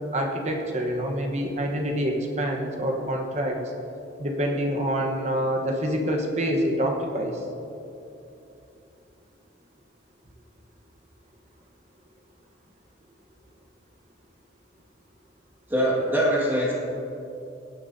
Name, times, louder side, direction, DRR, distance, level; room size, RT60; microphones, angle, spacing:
voice 1, 0.1-3.6 4.2-7.4, equal, 35° right, 1 dB, 1.1 m, -26 dB
voice 2, 15.7-16.7, equal, 10° right, -5 dB, 1.8 m, -23 dB
16.5 x 9.9 x 2.7 m, 2.8 s
head